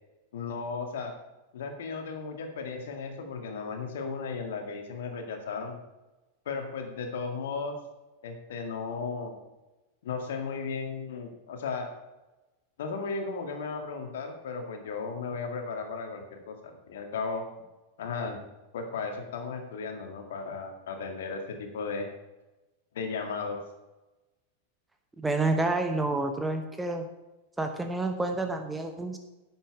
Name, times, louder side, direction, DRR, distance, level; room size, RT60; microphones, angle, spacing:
voice 1, 0.3-1.1 1.5-5.8 6.5-7.8 8.2-9.3 10.0-11.9 12.8-17.4 18.0-18.4 18.7-22.1 22.9-23.6, left 4 dB, 60° left, 4 dB, 1.9 m, -35 dB
voice 2, 25.2-27.1 27.6-29.2, right 2 dB, 10° right, 6 dB, 1.0 m, -29 dB
10.5 x 8.0 x 4.7 m, 1.1 s
figure-of-eight pair, 90°, 0 cm